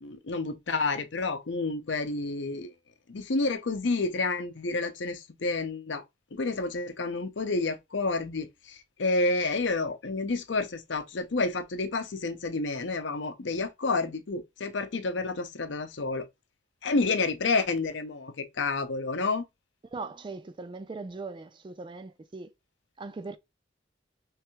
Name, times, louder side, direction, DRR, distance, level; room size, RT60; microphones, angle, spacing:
voice 1, 0.0-2.7 3.1-6.0 6.3-16.3 16.8-19.4, left 3 dB, 70° left, 0.7 m, -29 dB
voice 2, 19.9-22.5 23.0-23.4, right 3 dB, 25° right, 0.4 m, -39 dB
3.3 x 3.3 x 3.0 m
head